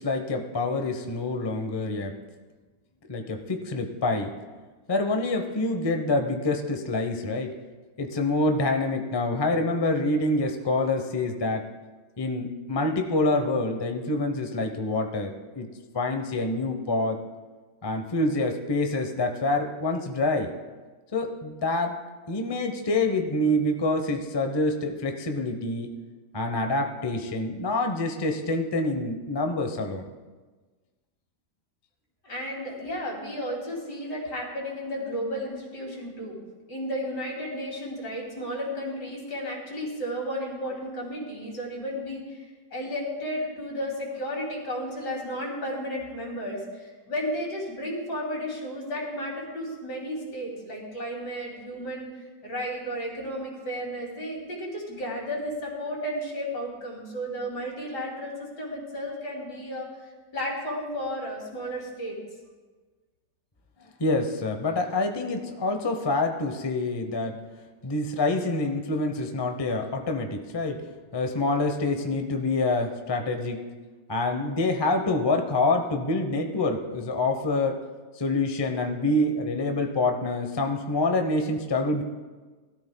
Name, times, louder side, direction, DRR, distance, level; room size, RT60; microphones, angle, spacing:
voice 1, 0.0-2.1 3.1-4.3 4.9-7.6 8.0-11.7 12.2-15.7 15.9-17.2 17.8-20.5 21.1-22.0 22.3-25.9 26.3-30.1 64.0-67.4 67.8-70.8 71.1-73.6 74.1-77.8 78.1-82.0, left 2 dB, 30° left, 5 dB, 0.5 m, -26 dB
voice 2, 32.2-36.4 36.7-42.4 42.7-52.1 52.4-59.9 60.3-62.2, equal, 75° left, -2 dB, 3.2 m, -33 dB
19.5 x 13.0 x 2.2 m, 1.3 s
omnidirectional pair, 1.9 m